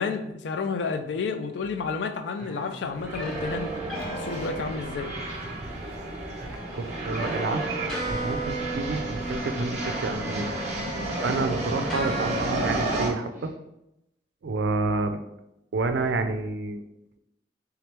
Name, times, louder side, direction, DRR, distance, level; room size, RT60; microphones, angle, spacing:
voice 1, 0.0-3.7 4.1-5.1, left 4 dB, 80° left, 8 dB, 0.4 m, -30 dB
sound 1, 1.6-2.0 2.8-4.4 4.7-6.0 6.8-7.4 7.7-9.5 9.8-10.8 11.2-11.4 11.7-12.7 13.1-13.5, right 1 dB, 15° right, 1.2 m, -47 dB
sound 2, 2.4-5.5 6.4-10.1 10.3-12.9, right 2 dB, 5° left, 1.3 m, -36 dB
sound 3, 2.9-13.1, right 1 dB, 40° right, 0.6 m, -32 dB
voice 2, 6.7-10.5 11.2-13.5 14.4-15.2 15.7-16.8, right 3 dB, 80° right, 8 dB, 0.4 m, -29 dB
3.4 x 3.0 x 3.3 m, 0.86 s
head